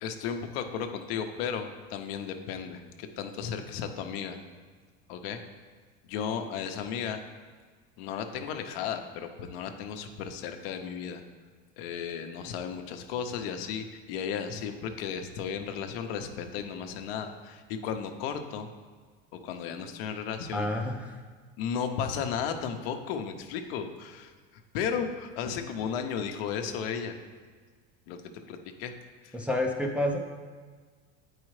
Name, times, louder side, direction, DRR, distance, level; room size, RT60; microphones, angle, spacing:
voice 1, 0.0-4.4 5.1-5.4 6.0-7.2 8.0-11.2 11.8-18.7 19.4-20.7 21.6-24.3 24.7-27.1 28.1-28.2 28.5-28.9 29.2-29.4, left 7 dB, 75° left, 6 dB, 0.7 m, -34 dB
voice 2, 20.5-21.2 29.3-30.2, left 1 dB, 5° right, -1 dB, 0.4 m, -29 dB
8.6 x 4.8 x 3.2 m, 1.5 s
supercardioid pair, 135°, 30 cm